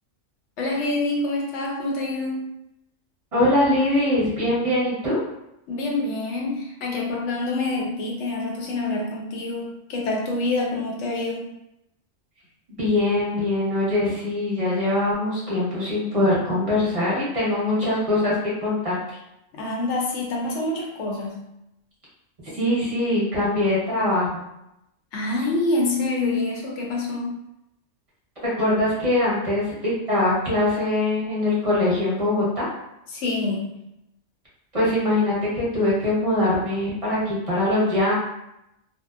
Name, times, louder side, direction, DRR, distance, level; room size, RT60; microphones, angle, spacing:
voice 1, 0.6-2.5 5.7-11.5 19.5-21.4 25.1-27.4 33.1-33.7, left 2 dB, 70° left, -1 dB, 0.8 m, -26 dB
voice 2, 3.3-5.2 12.8-19.0 22.5-24.4 28.6-32.7 34.7-38.1, left 1 dB, 30° right, -8 dB, 0.9 m, -22 dB
2.7 x 2.0 x 2.3 m, 0.85 s
omnidirectional pair, 1.3 m